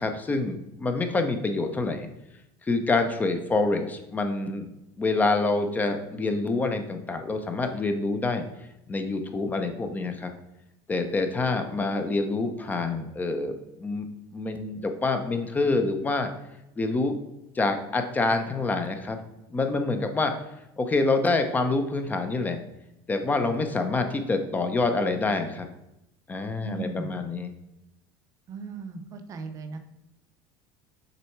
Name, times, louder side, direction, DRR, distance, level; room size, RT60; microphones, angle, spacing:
voice 1, 0.0-2.1 2.6-4.7 5.0-8.4 8.9-10.3 10.9-14.1 14.3-16.3 16.8-17.2 17.5-19.2 19.5-20.3 20.8-22.6 23.1-25.7 26.3-27.5, left 3 dB, 15° left, 6 dB, 0.8 m, -26 dB
voice 2, 26.6-27.2 28.5-29.8, right 4 dB, 35° right, 7 dB, 0.7 m, -37 dB
6.8 x 4.3 x 4.6 m, 0.86 s
supercardioid pair, 135°, 10 cm